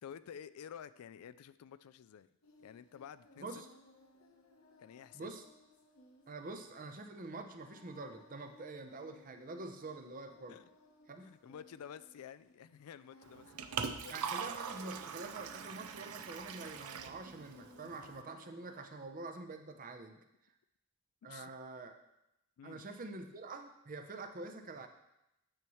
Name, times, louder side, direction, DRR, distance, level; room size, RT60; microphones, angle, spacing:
voice 1, 0.0-2.3 2.6-3.6 4.8-5.3 10.5-10.6 11.2-14.2 17.8-18.0 21.2-21.5 22.6-22.8, left 8 dB, 85° left, 15 dB, 0.3 m, -51 dB
Singing, 2.4-19.1, left 1 dB, 70° left, 1.0 m, -63 dB
voice 2, 6.3-10.6 11.1-11.3 14.1-20.2 21.2-22.0 22.6-24.9, right 3 dB, 40° right, 6 dB, 0.7 m, -46 dB
Liquid, 13.2-18.2, right 6 dB, 80° right, 0.5 m, -42 dB
8.8 x 7.0 x 3.1 m, 0.87 s
head